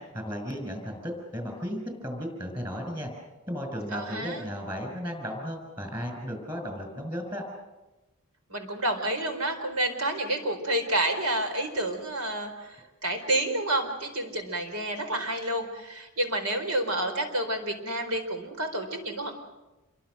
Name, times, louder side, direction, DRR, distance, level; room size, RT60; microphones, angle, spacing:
voice 1, 0.0-3.1 3.5-7.4, equal, 20° right, 4 dB, 5.6 m, -35 dB
voice 2, 3.9-4.4 8.5-19.4, right 1 dB, 80° right, 6 dB, 4.3 m, -29 dB
27.5 x 23.0 x 6.3 m, 1.1 s
head